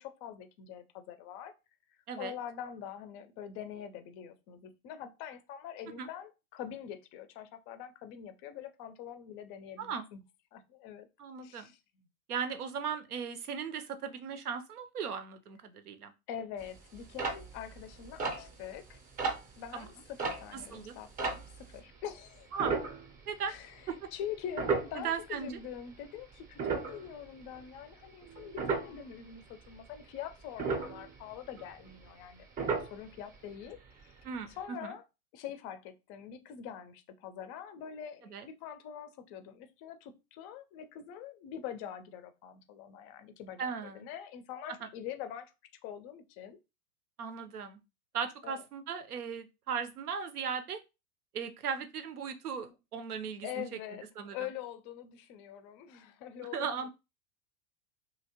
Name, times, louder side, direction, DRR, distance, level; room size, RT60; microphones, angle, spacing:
voice 1, 0.0-1.5 2.2-10.2 10.5-11.1 11.4-11.8 16.3-19.0 19.6-22.5 23.5-23.8 24.1-32.5 32.8-34.1 34.6-35.0 35.3-45.5 45.8-46.6 48.4-48.6 53.4-54.0 54.3-56.9, left 9 dB, 30° left, 0.4 m, -44 dB
voice 2, 11.2-11.7 12.3-16.1 19.7-19.9 20.7-20.9 22.5-22.7 23.3-23.5 23.9-24.1 25.0-25.6 34.2-34.9 38.2-38.5 43.6-44.1 47.2-47.8 48.1-50.8 51.3-53.6 54.2-54.4 56.5-56.9, right 6 dB, 80° right, 0.7 m, -37 dB
sound 1, 16.6-21.8 22.6-23.6 23.9-24.1 24.5-25.8 26.2-29.1 29.5-30.0 30.3-32.3 32.6-33.4 33.7-33.8 34.0-34.2 34.6-34.7, right 4 dB, 20° right, 0.6 m, -35 dB
2.9 x 2.7 x 2.8 m
figure-of-eight pair, 95°, 44 cm